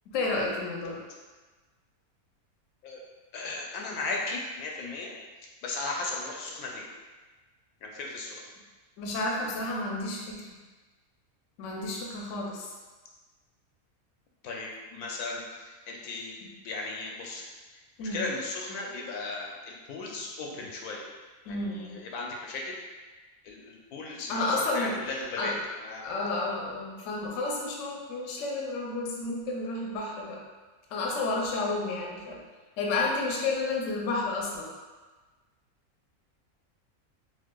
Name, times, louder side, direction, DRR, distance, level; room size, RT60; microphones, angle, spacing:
voice 1, 0.1-1.0 9.0-10.4 11.6-12.7 18.0-18.2 21.5-22.0 24.3-24.9 25.4-25.5 26.0-30.4 30.9-32.4 32.8-34.7, left 2 dB, 70° left, -2 dB, 0.9 m, -31 dB
voice 2, 3.3-5.1 5.6-6.9 7.8-8.4 14.4-16.4 16.6-17.5 18.0-21.0 21.5-22.8 23.4-26.0, left 3 dB, 85° left, -1 dB, 1.1 m, -36 dB
4.5 x 2.1 x 2.2 m, 1.3 s
omnidirectional pair, 1.6 m